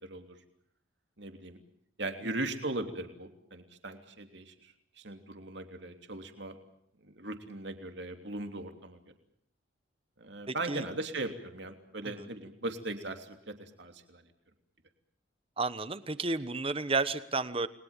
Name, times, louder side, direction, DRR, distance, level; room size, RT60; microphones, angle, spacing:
voice 1, 0.0-0.4 1.2-1.6 2.0-6.6 7.0-9.0 10.2-14.2, right 2 dB, 60° right, 6 dB, 3.1 m, -39 dB
voice 2, 10.5-10.8 12.1-12.3 15.6-17.7, right 3 dB, 30° right, 13 dB, 1.2 m, -32 dB
30.0 x 22.0 x 7.3 m, 0.69 s
head